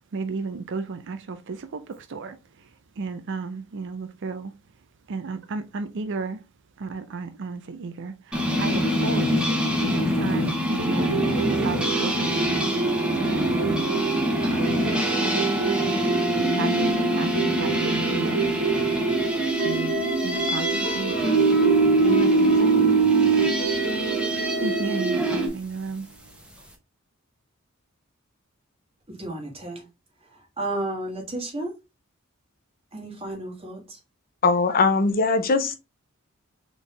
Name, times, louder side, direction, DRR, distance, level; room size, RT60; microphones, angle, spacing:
voice 1, 0.1-2.4 3.0-4.5 5.1-6.4 6.8-11.1 11.5-12.7 13.2-14.1 14.4-15.7 16.3-19.0 19.6-20.0 20.2-21.4 22.0-23.5 23.9-24.0 24.3-26.1, right 4 dB, 60° right, 0.5 m, -34 dB
sound 1, 8.3-25.5, right 1 dB, 5° right, 1.0 m, -24 dB
sound 2, 10.8-25.5, right 4 dB, 85° right, 1.6 m, -26 dB
voice 2, 29.1-29.9 30.6-31.7 32.9-34.0, right 1 dB, 30° right, 1.8 m, -32 dB
voice 3, 34.4-35.7, left 3 dB, 45° left, 0.7 m, -20 dB
4.2 x 3.5 x 3.2 m
head